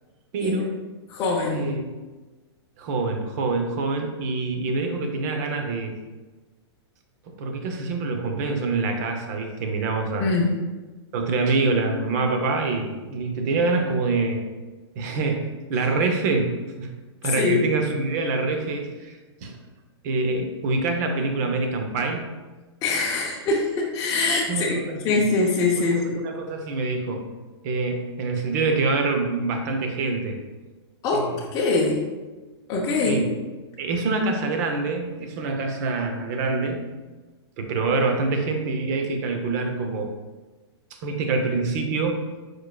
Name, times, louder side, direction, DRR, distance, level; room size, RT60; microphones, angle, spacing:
voice 1, 0.3-0.8 1.5-1.8 2.8-5.9 7.3-10.3 11.1-14.4 15.0-16.9 17.2-19.6 20.0-22.2 24.5-25.2 25.8-27.3 27.6-30.4 31.1-31.4 33.1-33.3 33.8-36.8 37.6-40.1 41.0-42.2, right 3 dB, 40° right, 4 dB, 0.7 m, -25 dB
voice 2, 1.1-1.7 10.2-10.5 17.4-17.6 22.8-24.8 25.0-26.2 31.0-32.1 32.7-33.2, left 3 dB, 25° left, -4 dB, 0.6 m, -23 dB
4.6 x 4.6 x 2.3 m, 1.2 s
hypercardioid pair, 150°, 15 cm